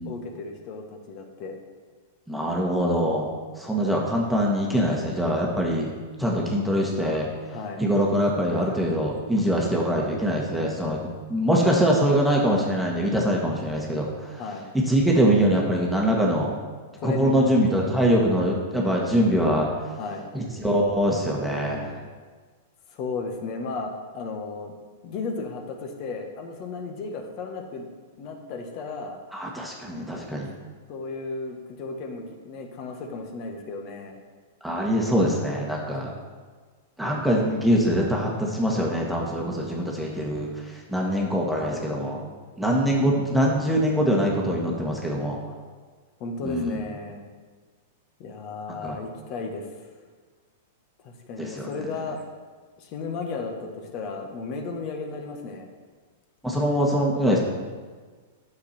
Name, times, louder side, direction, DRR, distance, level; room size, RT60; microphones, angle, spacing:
voice 1, 0.0-1.6 7.5-7.8 8.5-8.9 14.4-14.7 17.0-17.7 20.0-20.3 22.9-24.7 25.0-27.9 28.2-29.2 30.9-34.2 41.0-41.1 46.2-47.3 48.2-49.7 51.0-52.2 52.8-55.7, left 4 dB, 45° left, 4 dB, 1.5 m, -34 dB
voice 2, 2.3-3.3 3.6-5.9 6.2-7.3 7.8-14.4 14.9-16.5 17.0-19.7 20.3-21.9 29.3-30.5 34.6-36.1 37.0-42.2 42.6-45.4 46.4-46.8 48.7-49.0 51.4-51.7 56.4-57.4, equal, ahead, -3 dB, 1.6 m, -23 dB
9.4 x 6.6 x 4.4 m, 1.5 s
hypercardioid pair, 110°, 0 cm